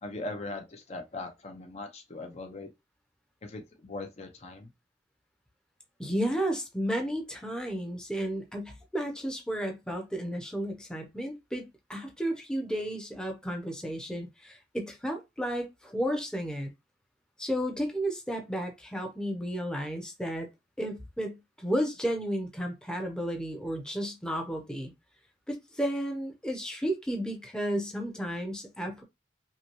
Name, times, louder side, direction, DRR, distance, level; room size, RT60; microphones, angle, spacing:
voice 1, 0.0-2.7 3.4-4.7, left 2 dB, 40° left, 0.7 m, -40 dB
voice 2, 6.0-16.7 17.4-20.5 20.8-24.9 25.5-29.0, equal, 5° left, 0.8 m, -33 dB
5.6 x 2.2 x 3.0 m
head